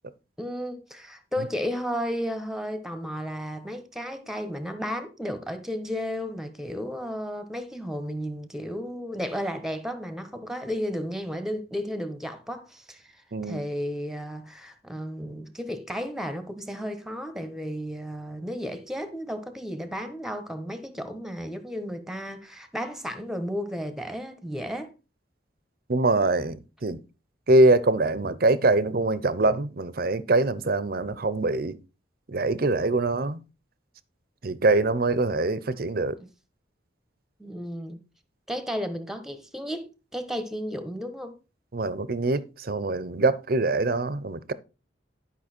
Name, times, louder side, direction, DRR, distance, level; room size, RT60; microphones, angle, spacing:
voice 1, 0.4-24.9 36.2-36.3 37.4-38.0 38.5-41.4, equal, 5° right, 1.2 m, -33 dB
voice 2, 13.3-13.6 25.9-27.0 27.5-31.8 32.3-33.4 34.4-36.2 41.7-44.5, right 2 dB, 55° right, 0.7 m, -23 dB
11.0 x 5.6 x 4.4 m
head